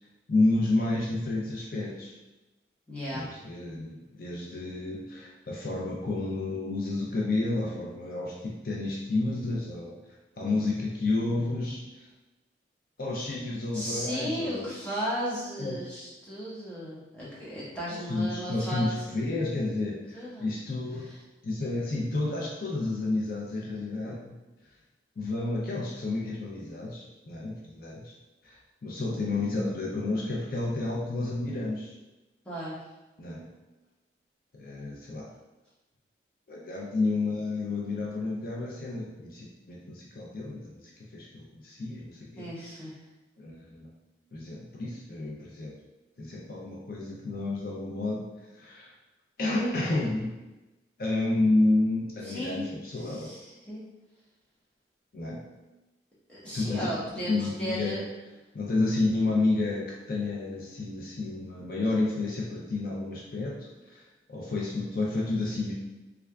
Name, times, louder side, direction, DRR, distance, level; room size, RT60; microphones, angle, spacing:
voice 1, 0.3-2.1 3.1-10.0 10.4-12.1 13.0-14.7 15.6-15.8 17.9-21.1 21.4-24.4 25.2-28.1 28.4-31.9 33.2-33.5 34.5-35.3 36.5-40.8 41.1-42.5 43.4-43.9 44.3-45.7 46.2-48.9 49.4-50.3 51.0-53.3 55.1-55.4 56.5-56.9 57.1-58.0 58.5-64.0 64.3-65.7, left 2 dB, 55° left, -3 dB, 0.5 m, -30 dB
voice 2, 2.9-3.3 13.7-19.0 20.1-20.5 21.0-21.2 23.7-23.9 32.4-32.8 42.4-43.0 52.2-53.8 56.3-58.1, equal, 5° left, -9 dB, 1.0 m, -35 dB
3.4 x 3.3 x 2.3 m, 1.1 s
head